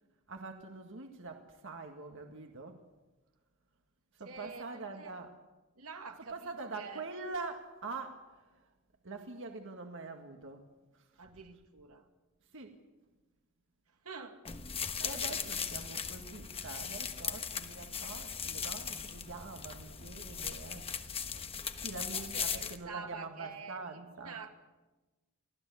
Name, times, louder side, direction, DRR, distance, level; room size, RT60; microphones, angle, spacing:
voice 1, 0.3-2.8 4.1-5.3 6.3-8.7 9.0-10.7 10.9-11.2 12.5-12.8 15.0-20.9 21.8-24.4, right 3 dB, 60° right, 1.9 m, -44 dB
voice 2, 4.2-5.1 5.8-7.0 11.2-12.1 13.9-14.4 15.0-15.5 15.9-16.0 21.8-24.6, right 4 dB, 75° right, 2.2 m, -48 dB
sound 1, 14.4-22.8, left 7 dB, 25° left, 1.2 m, -38 dB
24.5 x 16.0 x 8.4 m
head